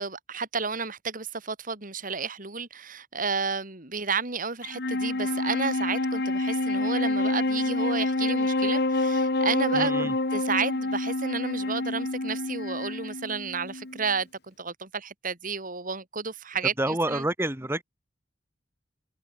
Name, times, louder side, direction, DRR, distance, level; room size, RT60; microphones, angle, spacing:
voice 1, 0.0-17.3, right 5 dB, 50° right, 3.5 m, -32 dB
Wind instrument woodwind instrument, 4.6-14.1, left 2 dB, 60° left, 1.4 m, -27 dB
voice 2, 9.7-10.1 16.8-17.8, right 1 dB, 15° right, 3.1 m, -28 dB
head